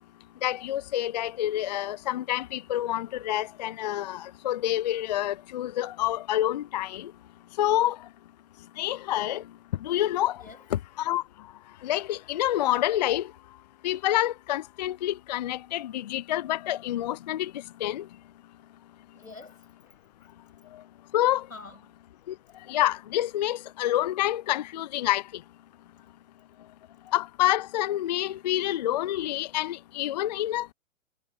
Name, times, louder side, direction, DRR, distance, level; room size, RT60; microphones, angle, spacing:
voice 1, 0.4-7.1 7.6-8.0 8.8-9.4 9.8-10.4 10.7-11.2 11.8-13.3 13.8-18.1 20.7-20.8 21.1-21.5 22.3-22.4 22.7-25.4 27.1-30.7, left 13 dB, 35° left, 0.5 m, -28 dB
voice 2, 19.1-20.3 21.5-21.9 25.8-26.0, left 3 dB, 90° left, 7.6 m, -48 dB
figure-of-eight pair, 120°, 39 cm